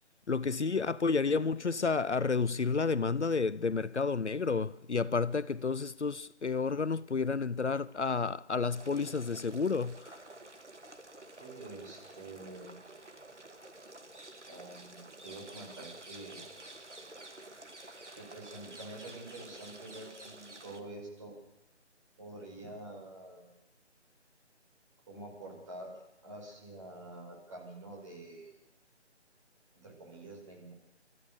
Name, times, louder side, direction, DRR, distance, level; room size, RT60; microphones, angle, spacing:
voice 1, 0.3-10.2, left 4 dB, 75° left, 0.8 m, -31 dB
sound 1, 8.7-20.8, right 2 dB, 80° right, 2.3 m, -50 dB
voice 2, 11.4-12.7 14.5-16.5 18.1-21.3 22.2-23.5 25.1-25.9 26.2-28.6 29.7-30.7, right 2 dB, 25° right, 5.5 m, -47 dB
30.0 x 14.0 x 6.7 m
figure-of-eight pair, 155°, 35 cm